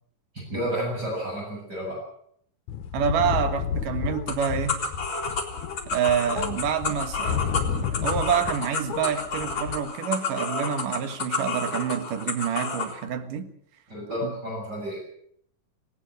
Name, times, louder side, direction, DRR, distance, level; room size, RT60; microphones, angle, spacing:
voice 1, 0.3-2.0 13.9-15.0, equal, 30° right, 7.7 m, -31 dB
sound 1, 2.7-8.6 8.9-9.8, left 8 dB, 70° left, 2.5 m, -31 dB
voice 2, 2.9-4.8 5.9-13.5 14.2-14.4, right 7 dB, 80° right, 3.2 m, -27 dB
sound 2, 4.3-12.9, left 4 dB, 35° left, 3.3 m, -30 dB
19.0 x 18.5 x 7.9 m
omnidirectional pair, 3.7 m